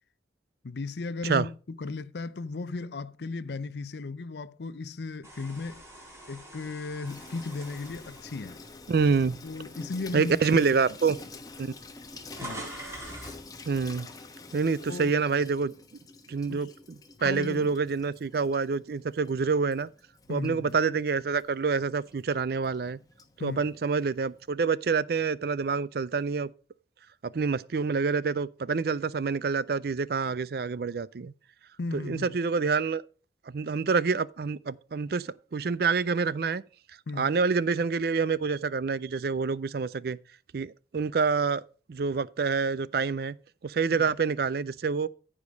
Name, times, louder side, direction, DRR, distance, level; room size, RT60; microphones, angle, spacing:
voice 1, 0.6-1.5 1.8-5.8 6.3-8.6 9.4-11.0 12.4-12.7 14.8-15.2 16.5-16.7 17.2-17.7 20.3-20.8 23.4-23.7 31.8-32.4 37.1-37.3 43.9-44.1, left 3 dB, 70° left, 0.6 m, -36 dB
sound 1, 5.2-9.5 10.0-10.2 11.1-11.2 11.4-13.5, right 1 dB, 15° right, 4.2 m, -44 dB
Water tap faucet / Sink (filling or washing), 7.1-24.5, left 3 dB, 20° left, 1.1 m, -48 dB
voice 2, 8.9-9.4 10.1-11.2 11.6-11.7 13.7-14.1 14.5-15.7 16.3-16.7 17.2-19.9 20.3-23.0 23.4-26.5 27.2-31.3 31.9-33.0 33.5-36.6 37.2-40.2 40.5-41.6 41.9-43.4 43.6-45.1, right 5 dB, 55° right, 0.4 m, -27 dB
14.5 x 5.0 x 5.2 m
head